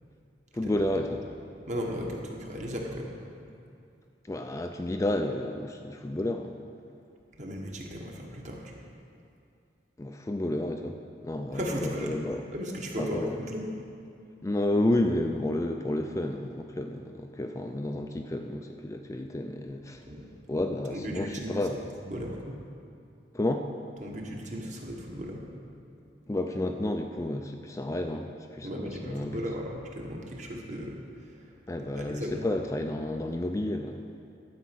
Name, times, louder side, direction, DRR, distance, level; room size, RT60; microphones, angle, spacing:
voice 1, 0.5-1.2 4.3-6.6 10.0-11.0 11.2-12.4 13.0-13.4 14.4-20.0 20.5-21.8 23.3-23.7 26.3-29.4 31.7-34.0, left 1 dB, 15° left, 4 dB, 0.4 m, -31 dB
voice 2, 1.7-3.1 7.4-8.7 11.5-12.2 12.5-13.7 20.1-20.3 20.9-21.5 22.0-22.5 24.0-25.4 26.0-26.1 28.6-31.0 31.8-32.4, equal, 40° right, -1 dB, 1.4 m, -36 dB
12.0 x 5.2 x 7.6 m, 2.5 s
head